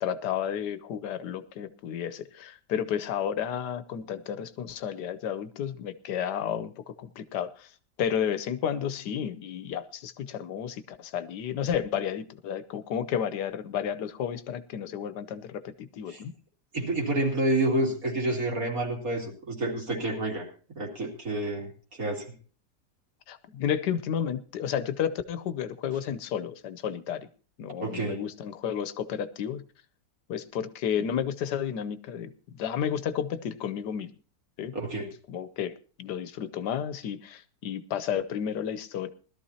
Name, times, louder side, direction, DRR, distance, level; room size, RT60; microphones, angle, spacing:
voice 1, 0.0-7.7 8.0-16.3 23.3-27.3 27.6-29.6 30.3-34.1 34.6-34.7 35.3-39.1, left 8 dB, 80° left, 12 dB, 1.4 m, -32 dB
voice 2, 16.7-20.5 20.7-21.7 22.0-22.3 27.8-28.2 34.7-35.1, right 1 dB, 55° right, 0 dB, 3.2 m, -28 dB
20.0 x 13.0 x 2.8 m, 0.38 s
omnidirectional pair, 1.8 m